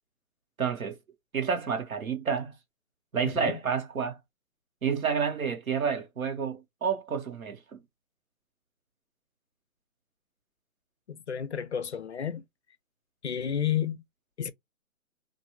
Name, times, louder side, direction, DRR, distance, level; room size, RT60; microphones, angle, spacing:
voice 1, 0.6-1.0 1.3-2.5 3.1-4.2 4.8-7.8, right 6 dB, 80° right, 1.2 m, -29 dB
voice 2, 3.2-3.6 11.1-12.4 13.2-14.0 14.4-14.5, left 9 dB, 55° left, 0.5 m, -31 dB
3.0 x 2.5 x 2.6 m
hypercardioid pair, 170°, 41 cm